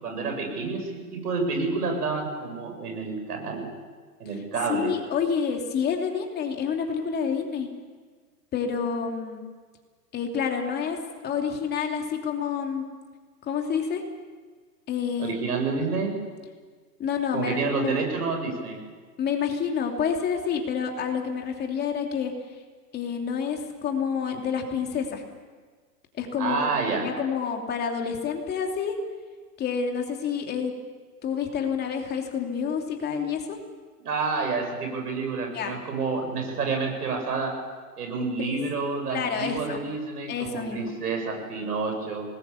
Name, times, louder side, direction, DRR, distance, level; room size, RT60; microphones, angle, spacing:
voice 1, 0.0-3.6 4.2-4.9 15.2-16.1 17.3-18.8 26.4-27.0 34.0-37.5 38.0-42.3, right 4 dB, 70° right, 2 dB, 7.6 m, -29 dB
voice 2, 4.7-7.7 8.5-9.4 10.1-11.0 11.2-12.8 13.4-14.0 14.9-15.4 17.0-18.0 19.2-22.3 22.9-25.2 26.2-28.9 29.6-30.7 31.2-33.6 35.5-35.8 38.2-38.6 39.1-39.8 40.3-41.0, left 6 dB, 20° left, 3 dB, 2.8 m, -28 dB
26.0 x 20.0 x 7.1 m, 1.5 s
hypercardioid pair, 130°, 48 cm